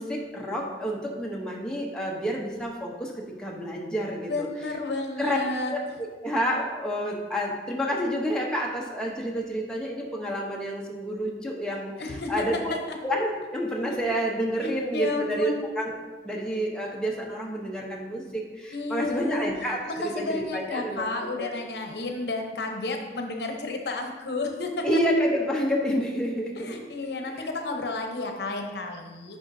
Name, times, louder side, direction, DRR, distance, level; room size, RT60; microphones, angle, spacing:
voice 1, 0.0-4.5 5.2-5.4 5.7-5.8 6.2-11.9 12.3-15.9 16.2-19.8 20.2-21.1 21.3-21.5 24.8-26.5 27.2-27.5, equal, 5° left, -3 dB, 0.8 m, -29 dB
voice 2, 4.3-5.7 12.0-13.0 13.9-14.0 14.6-15.7 18.7-24.9 26.6-29.4, left 2 dB, 70° left, 3 dB, 0.8 m, -32 dB
10.5 x 5.1 x 2.7 m, 1.3 s
head